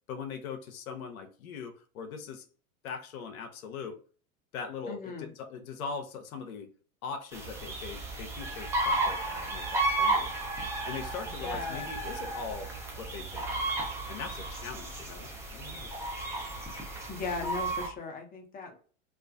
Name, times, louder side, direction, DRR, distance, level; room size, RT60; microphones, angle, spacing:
voice 1, 0.1-2.5 2.8-4.0 4.5-6.7 7.0-10.6 10.8-12.7 13.0-13.5 14.1-15.9, left 5 dB, 75° left, 0.7 m, -41 dB
voice 2, 4.9-5.3 11.4-11.9 17.1-18.8, left 4 dB, 20° left, 0.7 m, -37 dB
sound 1, 7.3-17.9, right 2 dB, 5° right, 0.3 m, -33 dB
2.4 x 2.3 x 2.5 m
hypercardioid pair, 105°, 42 cm